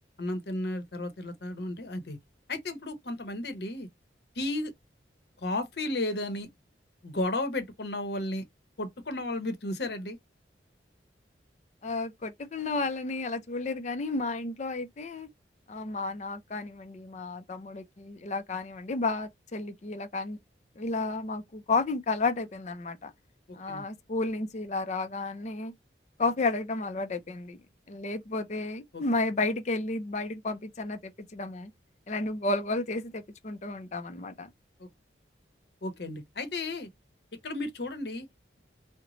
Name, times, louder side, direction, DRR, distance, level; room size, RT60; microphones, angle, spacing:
voice 1, 0.2-2.2 2.5-3.9 4.3-4.7 5.4-6.5 7.0-8.4 8.8-10.2 23.5-23.9 28.9-29.0 34.8-34.9 35.8-36.9 37.4-38.3, left 2 dB, 60° left, 0.8 m, -33 dB
voice 2, 11.8-15.3 15.7-20.4 20.8-23.1 23.6-25.7 26.2-27.6 27.9-31.7 32.1-34.5, left 3 dB, 40° left, 0.5 m, -32 dB
3.1 x 2.1 x 3.8 m
head